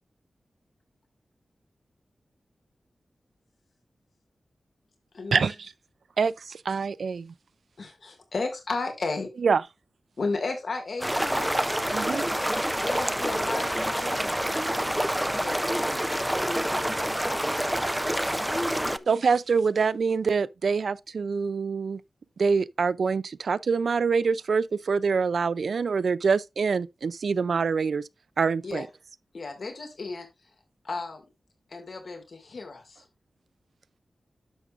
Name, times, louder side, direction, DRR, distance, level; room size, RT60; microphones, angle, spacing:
voice 1, 5.3-5.7 6.2-7.3 9.4-9.6 11.9-12.3 19.1-22.0 22.4-28.1 28.4-28.9, right 5 dB, 70° right, 0.4 m, -25 dB
voice 2, 7.8-9.3 10.2-11.7 12.8-15.7 28.6-28.8 29.3-30.3 30.8-31.2 31.7-33.0, left 3 dB, 60° left, 2.0 m, -34 dB
sound 1, 11.0-19.0, equal, 5° right, 0.4 m, -27 dB
voice 3, 15.7-16.1 16.4-16.9 18.5-19.1, left 1 dB, 10° left, 1.2 m, -35 dB
11.0 x 6.9 x 2.4 m
wide cardioid pair, 135°, 0 cm